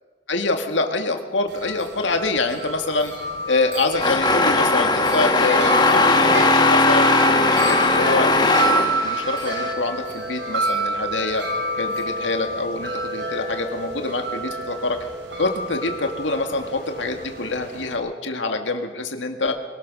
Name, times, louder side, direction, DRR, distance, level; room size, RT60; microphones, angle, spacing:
voice 1, 0.3-3.1 3.4-11.4 11.7-15.1 15.4-19.5, left 3 dB, 80° left, 5 dB, 2.2 m, -25 dB
Wind chime, 1.5-17.9, right 1 dB, 65° right, 4.4 m, -28 dB
sound 1, 4.0-9.7, left 3 dB, 25° left, 1.3 m, -18 dB
23.5 x 18.5 x 6.3 m, 1.4 s
head